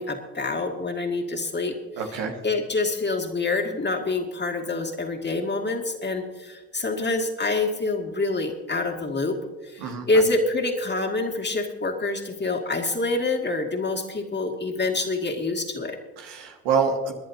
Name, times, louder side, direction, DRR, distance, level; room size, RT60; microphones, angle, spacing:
voice 1, 0.0-1.8 2.4-9.4 9.7-16.0, left 3 dB, 25° left, 3 dB, 2.3 m, -26 dB
voice 2, 2.0-2.4 9.8-10.2 16.2-17.1, right 6 dB, 80° right, 3 dB, 1.8 m, -26 dB
27.0 x 10.5 x 2.8 m, 1.2 s
hypercardioid pair, 50°, 40 cm